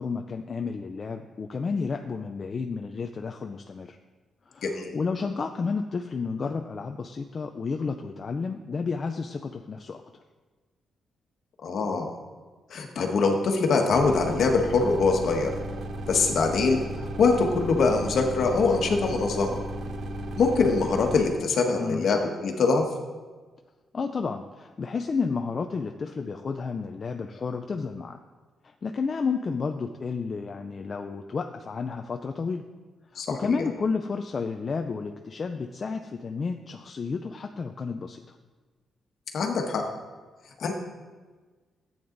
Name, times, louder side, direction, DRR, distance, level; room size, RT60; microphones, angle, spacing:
voice 1, 0.0-4.0 4.5-10.0 21.8-22.1 23.9-28.2 28.6-32.6 33.1-38.4, left 5 dB, 30° left, 5 dB, 0.5 m, -31 dB
voice 2, 4.6-4.9 11.6-12.1 12.7-15.5 16.1-19.6 20.4-22.8 33.1-33.6 39.3-39.8 40.6-40.7, left 4 dB, 55° left, 3 dB, 1.5 m, -23 dB
sound 1, 13.9-21.2, right 1 dB, 50° right, 1.0 m, -35 dB
14.0 x 8.7 x 3.9 m, 1.3 s
wide cardioid pair, 165°, 0 cm